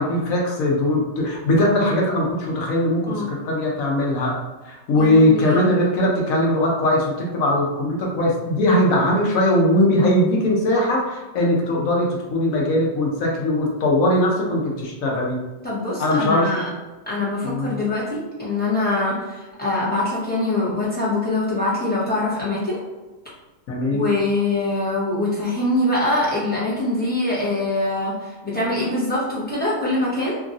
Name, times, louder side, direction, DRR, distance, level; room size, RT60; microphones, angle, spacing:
voice 1, 0.0-4.3 4.6-15.4 16.0-16.6 17.4-17.8 23.7-24.1, left 1 dB, 70° left, -2 dB, 1.1 m, -20 dB
voice 2, 5.0-5.7 15.6-16.7 17.1-22.8 23.9-30.4, left 2 dB, 10° left, -8 dB, 0.6 m, -23 dB
3.0 x 2.5 x 2.5 m, 1.1 s
omnidirectional pair, 1.6 m